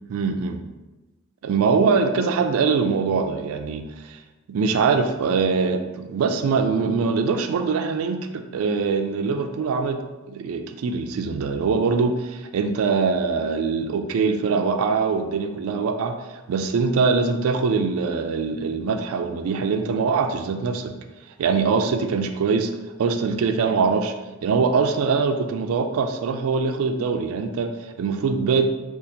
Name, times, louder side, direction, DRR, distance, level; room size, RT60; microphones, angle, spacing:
voice 1, 0.1-0.6 1.4-4.2 4.5-10.0 10.3-16.2 16.5-20.9 21.4-22.7 23.0-24.1 24.4-28.7, right 5 dB, 75° right, 6 dB, 0.3 m, -23 dB
2.7 x 2.5 x 4.0 m, 1.1 s
head